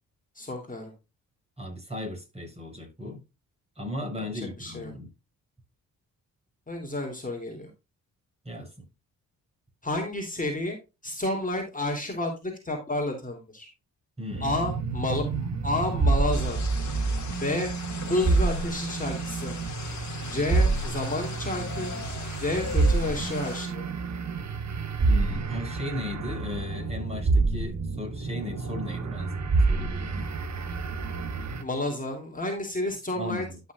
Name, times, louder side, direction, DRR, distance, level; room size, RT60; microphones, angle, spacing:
voice 1, 0.3-0.9 4.2-4.9 6.7-7.7 9.8-10.8 11.0-13.7 14.4-16.6 17.4-17.7 18.0-19.6 20.2-21.9 22.4-23.8 31.6-33.7, left 2 dB, 20° left, 3.1 m, -30 dB
voice 2, 1.6-3.2 3.8-5.1 8.4-8.9 14.2-14.5 25.0-30.3 33.1-33.6, left 1 dB, 15° right, 5.8 m, -36 dB
sound 1, 14.3-31.6, right 3 dB, 50° right, 1.5 m, -28 dB
sound 2, 16.3-23.7, left 5 dB, 50° left, 2.4 m, -39 dB
12.5 x 6.4 x 2.4 m
supercardioid pair, 55°, 37 cm